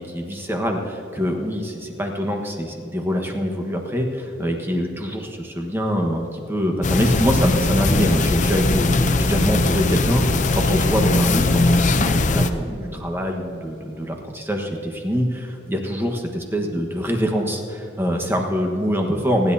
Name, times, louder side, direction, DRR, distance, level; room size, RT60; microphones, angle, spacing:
voice 1, 0.0-19.5, equal, 10° right, 2 dB, 1.4 m, -24 dB
sound 1, 6.8-12.5, left 2 dB, 40° left, 0.6 m, -19 dB
29.0 x 10.5 x 2.8 m, 2.8 s
head